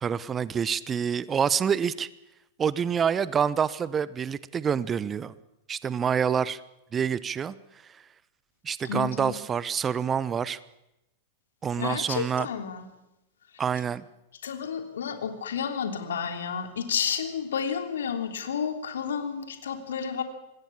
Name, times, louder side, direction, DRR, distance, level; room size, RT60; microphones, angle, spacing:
voice 1, 0.0-2.1 2.6-5.3 5.7-6.6 6.9-7.5 8.6-10.6 11.6-12.5 13.6-14.0, right 7 dB, 20° right, 18 dB, 0.9 m, -27 dB
voice 2, 8.8-9.4 11.8-12.8 14.4-20.2, left 7 dB, 70° left, 6 dB, 3.3 m, -31 dB
25.5 x 21.0 x 7.2 m, 0.91 s
figure-of-eight pair, 100°, 0 cm